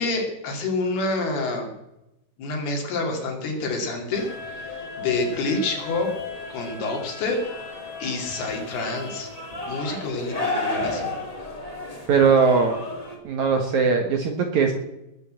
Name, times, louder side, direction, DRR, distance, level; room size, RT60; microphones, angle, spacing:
voice 1, 0.0-1.7 2.4-4.3 4.7-6.1 6.5-7.4 8.0-9.3 9.7-11.2, left 3 dB, 70° left, 2 dB, 4.6 m, -27 dB
sound 1, 4.1-13.2, left 3 dB, 15° left, 1.7 m, -33 dB
voice 2, 12.1-12.8 13.2-14.7, right 5 dB, 60° right, 4 dB, 2.1 m, -20 dB
20.5 x 7.5 x 7.6 m, 0.90 s
omnidirectional pair, 4.8 m